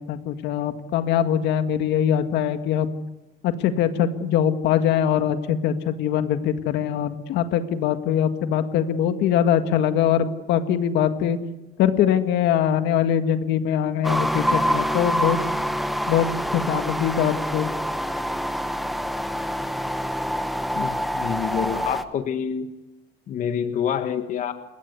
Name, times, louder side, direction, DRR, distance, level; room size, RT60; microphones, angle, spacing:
voice 1, 0.0-2.9 3.4-11.4 11.8-15.4 16.1-16.3 16.5-17.7, left 9 dB, 70° left, 8 dB, 1.9 m, -22 dB
sound 1, 14.0-22.0, equal, ahead, 1.1 m, -26 dB
voice 2, 20.7-22.7 23.3-24.5, left 8 dB, 45° left, 8 dB, 1.7 m, -27 dB
28.5 x 22.0 x 8.2 m, 0.97 s
cardioid pair, 165°, 18 cm